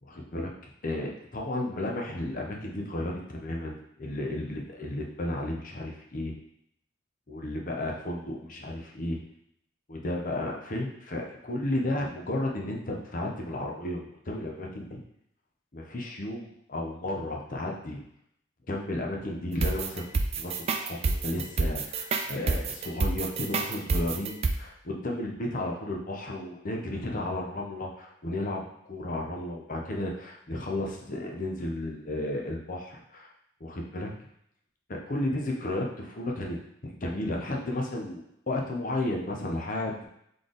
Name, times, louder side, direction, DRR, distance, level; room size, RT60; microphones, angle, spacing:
voice 1, 0.0-0.5 0.8-6.4 7.3-9.2 9.9-15.0 15.7-18.0 18.7-20.0 20.4-33.3 33.6-34.1 35.1-36.6 37.0-40.0, left 1 dB, 45° left, 0 dB, 0.8 m, -33 dB
sound 1, 19.6-24.5, right 3 dB, 35° right, 0.3 m, -28 dB
4.0 x 3.4 x 3.9 m, 0.74 s
head